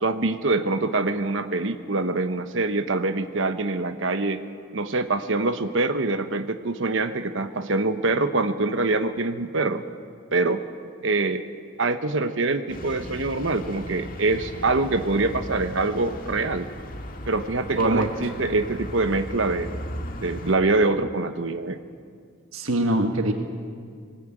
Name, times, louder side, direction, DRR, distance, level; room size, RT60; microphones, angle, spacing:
voice 1, 0.0-4.4 4.7-9.8 10.3-10.6 11.0-11.4 11.8-16.7 17.3-19.7 20.2-21.8, right 3 dB, 65° right, 9 dB, 1.0 m, -24 dB
sound 1, 12.7-20.6, left 1 dB, 40° left, 1.8 m, -37 dB
voice 2, 17.8-18.1 22.5-23.3, right 1 dB, 85° right, 5 dB, 1.5 m, -23 dB
20.5 x 19.0 x 8.9 m, 2.1 s
head